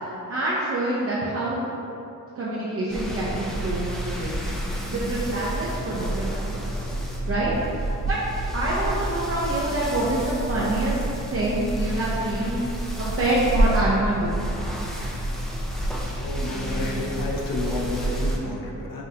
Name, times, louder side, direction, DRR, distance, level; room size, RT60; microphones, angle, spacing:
voice 1, 0.3-1.7 2.4-6.7 7.3-8.2 8.5-11.0 11.3-12.6 13.0-14.3, right 2 dB, 45° right, -7 dB, 0.6 m, -26 dB
sound 1, 2.9-18.4, right 1 dB, ahead, 0.5 m, -29 dB
voice 2, 16.2-19.0, left 2 dB, 85° left, -1 dB, 0.7 m, -30 dB
5.9 x 2.5 x 2.7 m, 2.8 s
cardioid pair, 115°, 33 cm